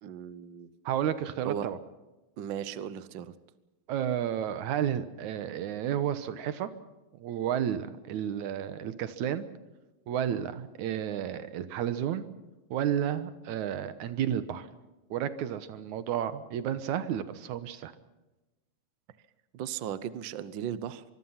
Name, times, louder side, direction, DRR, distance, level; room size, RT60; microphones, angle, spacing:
voice 1, 0.0-0.7 1.4-1.7 2.4-3.3 19.5-21.0, right 9 dB, 65° right, 14 dB, 1.2 m, -36 dB
voice 2, 0.9-1.8 3.9-6.7 7.2-9.5 10.1-12.2 12.7-14.7 15.1-17.9, right 10 dB, 90° right, 12 dB, 2.6 m, -31 dB
24.5 x 22.5 x 5.8 m, 1.1 s
omnidirectional pair, 3.3 m